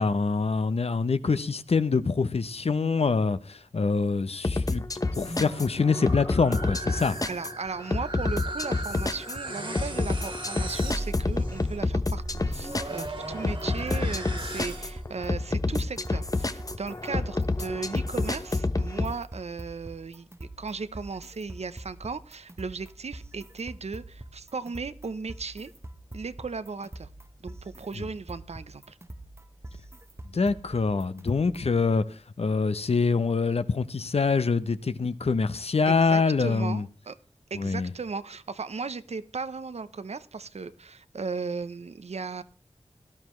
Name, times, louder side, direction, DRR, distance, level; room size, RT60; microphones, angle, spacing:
voice 1, 0.0-4.8 5.1-7.2 30.3-32.0 32.4-36.8 37.5-37.9, left 4 dB, 65° left, 0.8 m, -25 dB
sound 1, 4.4-19.1, left 2 dB, 30° left, 0.8 m, -29 dB
sound 2, 5.1-15.1, right 2 dB, 50° right, 2.0 m, -38 dB
voice 2, 7.0-20.3 20.6-25.7 26.1-27.1 27.4-29.0 35.8-37.2 37.5-42.4, right 4 dB, 70° right, 0.7 m, -36 dB
sound 3, 12.2-31.8, right 1 dB, 25° right, 1.0 m, -45 dB
17.5 x 12.0 x 3.1 m
cardioid pair, 45°, 11 cm